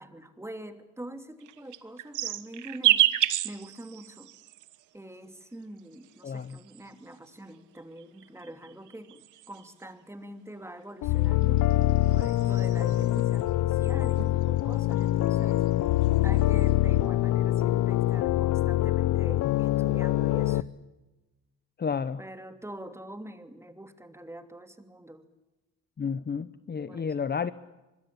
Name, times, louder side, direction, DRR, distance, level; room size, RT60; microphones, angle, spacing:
voice 1, 0.0-3.1 3.4-4.3 4.9-11.7 12.1-15.7 16.2-20.6 22.2-25.3 26.9-27.1, right 1 dB, 10° right, 8 dB, 2.8 m, -44 dB
sound 1, 1.4-4.8 5.8-7.1 8.0-9.8 11.2-13.4 13.8-14.3 14.6-15.7 16.0-16.6, right 13 dB, 80° right, 1.3 m, -31 dB
voice 2, 6.2-6.6 21.8-22.2 26.0-27.5, left 6 dB, 35° left, 14 dB, 1.0 m, -31 dB
sound 2, 11.0-20.6, left 15 dB, 85° left, 0.9 m, -24 dB
25.0 x 21.5 x 8.6 m, 1.0 s
cardioid pair, 90°, 30 cm